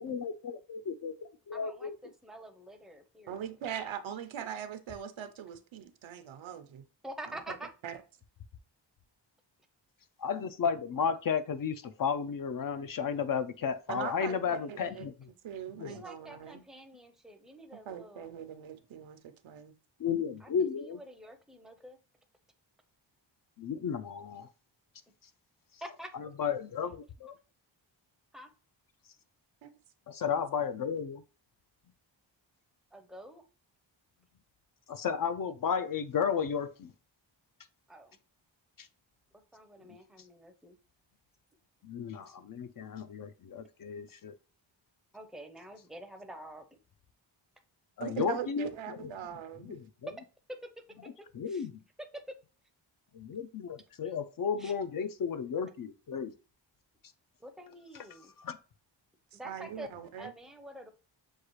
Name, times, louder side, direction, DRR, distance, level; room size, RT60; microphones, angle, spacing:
voice 1, 0.0-1.9 10.2-15.3 15.8-16.0 20.0-21.0 23.6-24.5 26.1-27.3 30.1-31.2 34.9-36.9 38.8-38.9 39.9-40.0 41.8-44.4 48.0-48.7 49.0-49.1 49.6-49.9 51.3-51.7 53.1-56.3 58.4-58.6, left 6 dB, 50° left, 0.5 m, -33 dB
voice 2, 1.5-1.9 2.2-3.4 7.0-7.7 14.4-15.1 15.9-18.3 20.4-20.5 20.8-22.0 25.8-26.1 28.3-28.5 32.9-33.4 37.9-38.2 39.5-40.8 45.1-46.8 51.5-51.6 54.6-54.7 57.4-58.3 59.3-60.9, right 1 dB, ahead, 0.5 m, -47 dB
voice 3, 3.3-6.8 7.3-7.6 7.8-8.0 13.9-15.1 15.4-16.6 17.7-19.7 29.6-29.7 30.2-30.3 48.0-49.8 59.3-60.3, right 9 dB, 85° right, 0.7 m, -41 dB
6.3 x 2.4 x 3.0 m
wide cardioid pair, 95°, 46 cm